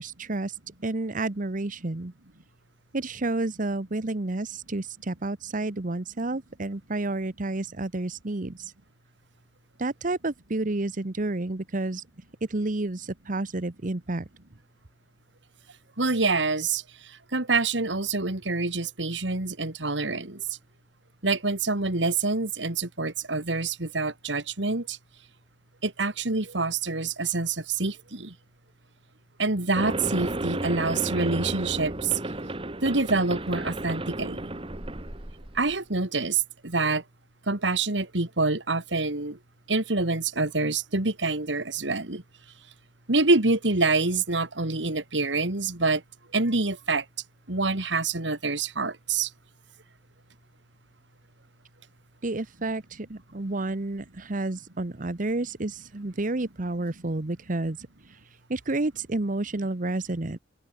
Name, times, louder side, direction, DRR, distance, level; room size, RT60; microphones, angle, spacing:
voice 1, 0.0-2.1 2.9-8.7 9.8-12.0 12.5-14.3 52.2-58.2 58.5-60.4, right 2 dB, 50° right, 1.1 m, -30 dB
voice 2, 16.0-20.6 21.2-25.0 25.8-28.3 29.4-32.2 32.8-34.5 35.5-37.0 37.5-39.4 39.7-42.2 43.1-46.0 46.3-47.0 47.5-49.3, right 3 dB, 85° right, 2.7 m, -26 dB
sound 1, 29.8-35.8, right 1 dB, 30° right, 1.9 m, -33 dB
head